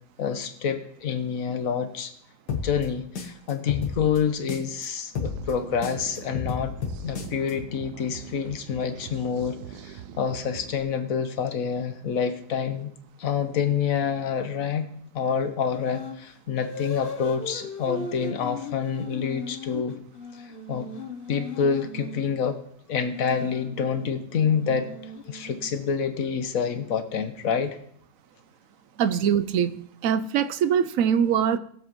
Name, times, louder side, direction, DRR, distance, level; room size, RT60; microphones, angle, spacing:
voice 1, 0.2-2.1 2.5-6.8 7.0-12.9 13.2-14.9 15.1-19.9 20.4-20.9 21.3-22.6 22.9-24.9 25.3-27.8, left 6 dB, 60° left, 1.4 m, -27 dB
sound 1, 2.5-4.8 5.1-7.5, left 6 dB, 85° left, 2.0 m, -32 dB
sound 2, 5.2-10.8, right 9 dB, 85° right, 1.2 m, -42 dB
sound 3, 15.7-16.2 16.6-22.2 22.9-25.9, left 4 dB, 45° left, 0.8 m, -38 dB
voice 2, 29.0-31.6, right 8 dB, 65° right, 0.9 m, -23 dB
20.5 x 7.5 x 3.1 m
omnidirectional pair, 1.7 m